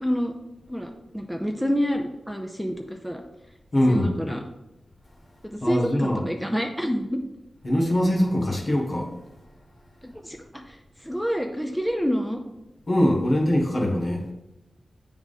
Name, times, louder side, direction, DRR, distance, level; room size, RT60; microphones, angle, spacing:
voice 1, 0.0-0.3 0.7-3.2 3.9-4.4 5.4-7.2 10.0-12.4, equal, ahead, 3 dB, 0.5 m, -28 dB
voice 2, 3.7-4.1 5.6-6.2 7.6-9.1 12.9-14.2, equal, 45° left, -1 dB, 1.5 m, -22 dB
8.6 x 3.6 x 4.1 m, 0.98 s
wide cardioid pair, 90°, 0 cm